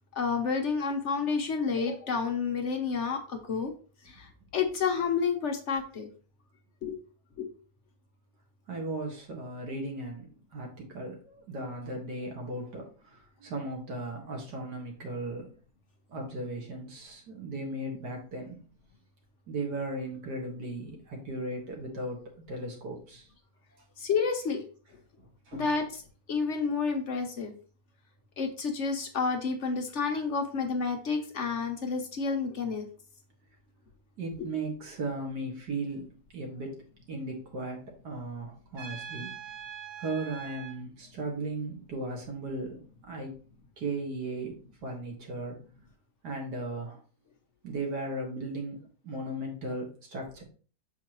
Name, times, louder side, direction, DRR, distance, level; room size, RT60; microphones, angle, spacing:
voice 1, 0.1-3.7 4.1-6.1 6.8-7.0 7.4-7.5 24.0-24.6 25.5-26.0 26.3-27.5 28.4-32.9, left 5 dB, 55° left, 4 dB, 1.0 m, -30 dB
voice 2, 8.7-15.5 16.1-18.6 19.5-23.3 25.5-25.7 34.2-36.8 37.1-39.3 40.0-43.4 43.8-44.6 44.8-45.6 46.2-47.0 47.6-50.4, right 2 dB, 90° right, 0 dB, 2.2 m, -36 dB
Trumpet, 38.7-40.8, right 7 dB, 50° right, 2.0 m, -42 dB
6.9 x 4.6 x 3.0 m, 0.40 s
omnidirectional pair, 1.7 m